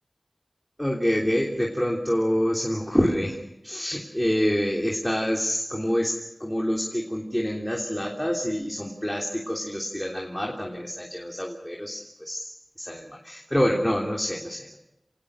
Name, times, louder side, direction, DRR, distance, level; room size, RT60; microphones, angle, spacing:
voice 1, 0.8-3.4 3.6-12.4 12.8-14.8, equal, 10° left, -1 dB, 3.3 m, -27 dB
28.5 x 19.0 x 6.7 m, 0.83 s
wide cardioid pair, 60°, 0 cm